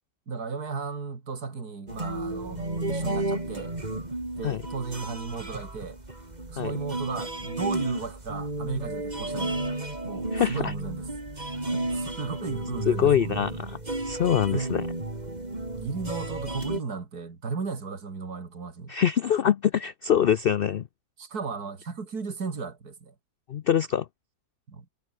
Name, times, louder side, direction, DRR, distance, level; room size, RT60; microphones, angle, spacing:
voice 1, 0.3-3.7 4.4-6.0 6.5-9.8 10.0-11.1 11.7-13.4 14.5-14.7 15.8-18.9 21.2-23.1 24.7-24.8, right 4 dB, 70° right, 3.3 m, -35 dB
sound 1, 1.9-16.8, right 2 dB, 25° right, 3.5 m, -33 dB
voice 2, 10.3-10.7 12.9-13.8 14.0-14.8 18.9-20.9 23.5-24.1, left 9 dB, 85° left, 0.5 m, -24 dB
omnidirectional pair, 1.7 m